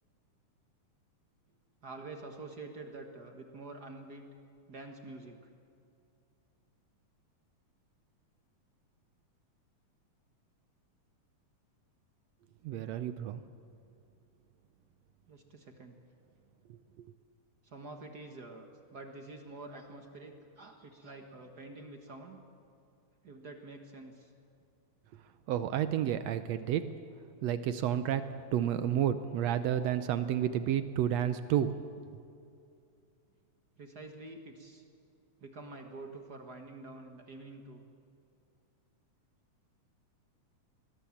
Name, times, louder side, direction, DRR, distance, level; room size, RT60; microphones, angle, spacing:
voice 1, 1.8-4.3 4.7-5.4 15.3-16.0 17.6-22.4 23.2-24.3 33.8-34.8 35.4-37.8, right 2 dB, 45° right, 4 dB, 1.3 m, -47 dB
voice 2, 12.6-13.4 25.5-26.9 27.4-31.7, right 10 dB, 75° right, 11 dB, 1.6 m, -30 dB
21.5 x 20.5 x 7.2 m, 2.5 s
omnidirectional pair, 3.6 m